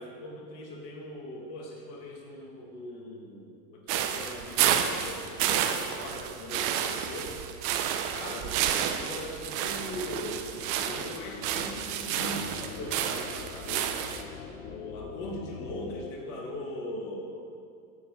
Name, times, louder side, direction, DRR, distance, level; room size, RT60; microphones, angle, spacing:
voice 1, 0.0-7.4 8.1-10.5 10.8-14.0 14.6-17.4, left 1 dB, 60° left, -1 dB, 2.6 m, -40 dB
sound 1, 3.9-14.2, right 9 dB, 55° right, 1.0 m, -30 dB
sound 2, 8.5-16.1, left 6 dB, 80° left, 0.9 m, -45 dB
9.9 x 7.1 x 7.4 m, 2.3 s
hypercardioid pair, 105°, 46 cm